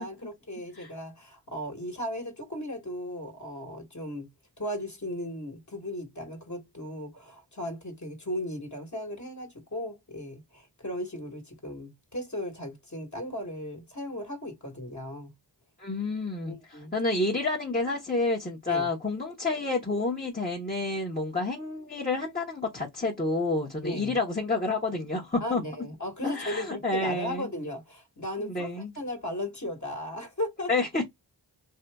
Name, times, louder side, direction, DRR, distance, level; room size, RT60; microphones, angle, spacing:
voice 1, 0.0-4.3 4.6-15.3 16.5-16.9 18.7-18.9 23.8-24.2 25.4-30.7, left 1 dB, 40° left, 1.5 m, -36 dB
voice 2, 15.8-25.6 26.2-27.5 28.4-28.9 30.7-31.0, left 3 dB, 20° left, 1.0 m, -29 dB
2.8 x 2.4 x 3.4 m
cardioid pair, 45°, 44 cm